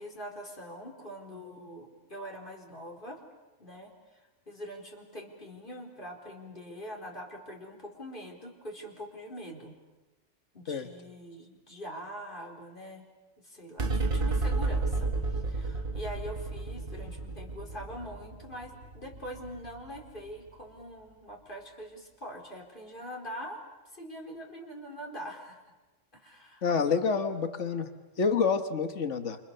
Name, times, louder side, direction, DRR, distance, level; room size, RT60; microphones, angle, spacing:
voice 1, 0.0-3.2 3.6-4.2 4.5-9.7 10.5-13.0 13.4-23.6 23.9-25.7 26.1-26.6 28.4-28.5, equal, 40° left, 0 dB, 4.5 m, -43 dB
sound 1, 13.8-20.5, right 3 dB, 45° right, 1.5 m, -32 dB
voice 2, 26.6-27.9 28.2-29.4, left 5 dB, 70° left, 8 dB, 1.8 m, -28 dB
28.5 x 28.5 x 6.9 m, 1.1 s
omnidirectional pair, 1.3 m